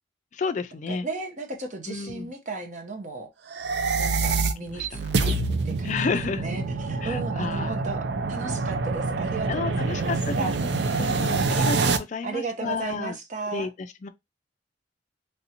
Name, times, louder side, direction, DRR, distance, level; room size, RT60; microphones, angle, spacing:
voice 1, 0.3-1.1 1.9-2.3 4.7-5.4 5.8-6.4 7.0-7.8 9.5-10.3 11.0-13.2 13.5-13.7 14.0-14.1, left 5 dB, 40° left, 0.3 m, -31 dB
voice 2, 0.9-3.3 3.9-6.0 6.4-10.6 11.0-11.6 12.2-13.7, right 4 dB, 45° right, 0.8 m, -35 dB
sound 1, 3.5-12.0, right 3 dB, 70° right, 0.5 m, -26 dB
3.3 x 2.6 x 2.8 m
head